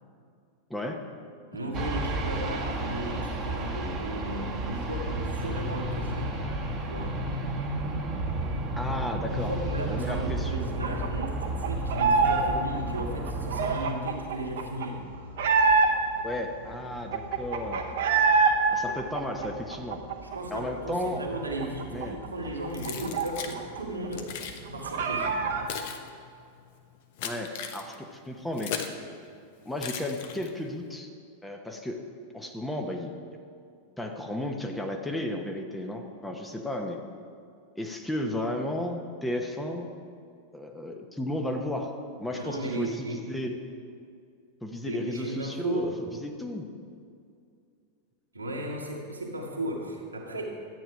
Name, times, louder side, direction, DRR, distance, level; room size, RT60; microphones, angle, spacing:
voice 1, 0.7-1.0 8.8-9.5 9.9-10.8 16.2-17.8 18.7-20.1 20.5-21.2 21.9-22.2 27.2-28.7 29.7-31.1 31.4-32.0 32.3-33.1 34.0-37.0 37.8-39.9 40.5-41.9 42.2-43.5 44.6-45.9 46.2-46.7, left 1 dB, 5° left, 2 dB, 1.0 m, -33 dB
voice 2, 1.5-6.4 6.8-7.2 9.2-15.0 20.2-24.3 24.7-25.3 42.3-43.2 44.8-45.9 48.3-50.5, right 1 dB, 80° right, -1 dB, 1.7 m, -35 dB
sound 1, 1.7-13.8, right 1 dB, 25° right, 1.2 m, -32 dB
sound 2, 10.8-12.4 12.7-16.2 16.6-16.7 16.9-18.5 18.9-20.6 20.9-21.0 21.3-23.8 24.1-24.2 24.5-25.7, right 4 dB, 55° right, 1.0 m, -26 dB
Keys jangling, 22.7-23.6 24.1-24.6 25.3-29.0 29.8-30.7, left 8 dB, 50° left, 0.9 m, -38 dB
12.5 x 8.8 x 4.9 m, 2.3 s
figure-of-eight pair, 90°, 0 cm